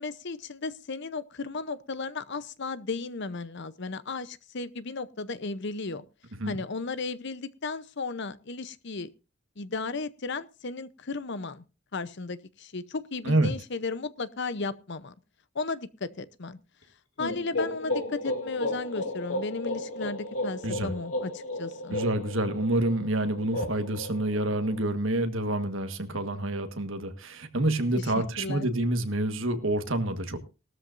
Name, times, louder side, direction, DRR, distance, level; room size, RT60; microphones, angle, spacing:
voice 1, 0.0-6.1 6.5-9.1 9.6-11.6 11.9-15.1 15.5-16.6 17.2-22.0 27.9-28.7, left 3 dB, 55° left, 15 dB, 0.8 m, -35 dB
sound 1, 17.2-24.9, left 1 dB, 70° left, 2.8 m, -34 dB
voice 2, 21.9-30.4, right 1 dB, 65° right, 8 dB, 1.5 m, -28 dB
18.5 x 13.0 x 2.6 m, 0.30 s
head